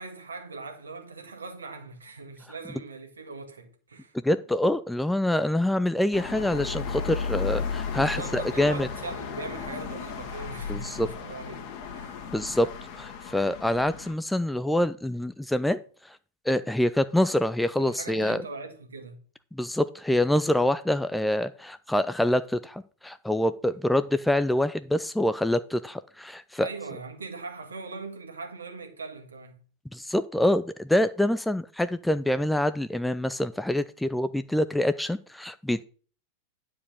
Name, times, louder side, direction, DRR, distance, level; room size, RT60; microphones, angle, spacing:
voice 1, 0.0-4.1 8.0-12.2 17.8-19.2 26.6-29.6, right 3 dB, 75° right, 1.7 m, -40 dB
voice 2, 4.2-8.9 10.7-11.1 12.3-12.7 13.0-15.8 16.5-18.4 19.5-26.7 29.9-35.8, left 1 dB, 5° left, 0.4 m, -26 dB
sound 1, 6.1-14.1, left 6 dB, 40° left, 1.8 m, -34 dB
10.0 x 4.7 x 6.4 m
figure-of-eight pair, 90°, 0 cm